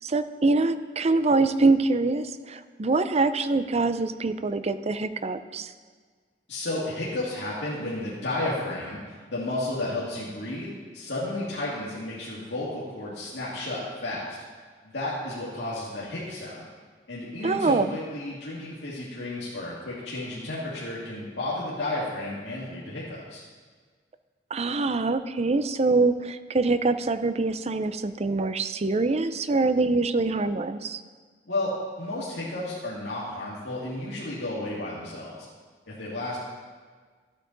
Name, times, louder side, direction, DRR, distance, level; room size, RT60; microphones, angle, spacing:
voice 1, 0.0-5.7 17.4-18.0 24.5-31.0, right 3 dB, 35° right, 11 dB, 0.5 m, -24 dB
voice 2, 6.5-14.4 14.8-16.6 17.1-23.4 31.5-35.3 35.9-36.4, left 2 dB, 85° left, -7 dB, 2.1 m, -32 dB
14.0 x 8.5 x 4.0 m, 1.5 s
head